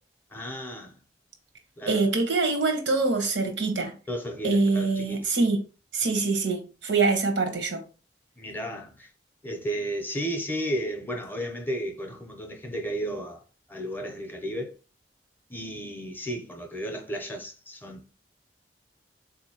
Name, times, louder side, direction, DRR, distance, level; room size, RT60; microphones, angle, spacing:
voice 1, 0.3-1.0 1.8-2.1 4.1-5.3 8.4-9.1 9.4-13.4 13.7-14.7 15.5-18.1, right 1 dB, 10° left, 0.5 m, -33 dB
voice 2, 1.9-3.9 4.4-5.6 5.9-7.8, right 3 dB, 90° right, 0.8 m, -24 dB
3.7 x 2.6 x 2.7 m
head